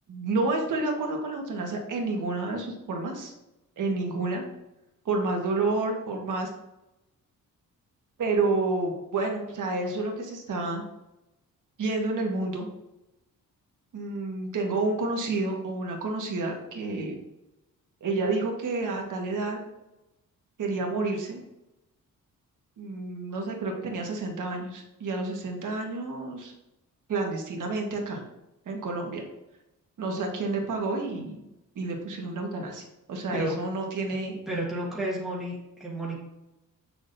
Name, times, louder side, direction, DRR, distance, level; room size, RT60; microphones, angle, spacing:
voice 1, 0.1-3.3 3.8-4.4 5.0-6.5 8.2-10.8 11.8-12.7 13.9-17.1 18.0-19.6 20.6-21.4 22.8-26.5 27.1-28.2 28.6-29.2 30.0-31.4 31.7-32.8 33.1-34.4, right 3 dB, 65° right, 1 dB, 1.5 m, -29 dB
voice 2, 34.5-35.5 35.8-36.2, right 1 dB, ahead, -5 dB, 1.5 m, -31 dB
8.3 x 6.4 x 2.6 m, 0.94 s
wide cardioid pair, 170°, 33 cm